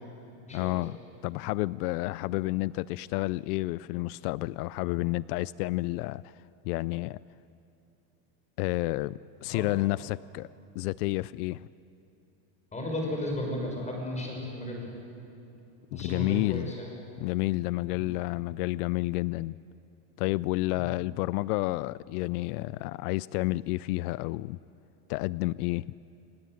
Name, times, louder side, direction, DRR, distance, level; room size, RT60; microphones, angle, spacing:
voice 1, 0.5-1.0 1.2-6.3 6.6-7.2 8.6-10.5 10.7-11.7 15.9-16.7 17.2-19.6 20.2-24.6 25.1-25.8, left 19 dB, 85° left, 20 dB, 0.6 m, -30 dB
voice 2, 12.7-14.9 15.9-16.9, left 1 dB, 15° left, 0 dB, 6.3 m, -34 dB
28.0 x 19.5 x 9.1 m, 2.9 s
cardioid pair, 150°, 44 cm